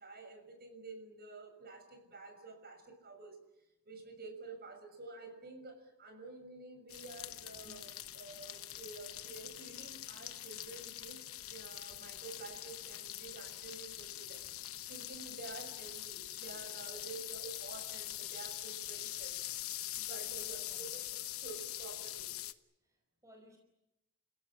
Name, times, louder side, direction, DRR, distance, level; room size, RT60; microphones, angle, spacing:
voice 1, 0.0-3.4 3.8-11.2 11.5-14.6 14.9-19.4 19.9-20.6 20.9-21.0 21.4-22.3, right 3 dB, 45° right, 6 dB, 6.5 m, -50 dB
sound 1, 6.9-22.5, left 14 dB, 75° left, 1.0 m, -44 dB
voice 2, 19.9-20.9 22.8-23.6, equal, 15° right, 2 dB, 4.8 m, -61 dB
29.5 x 16.5 x 10.0 m, 0.91 s
head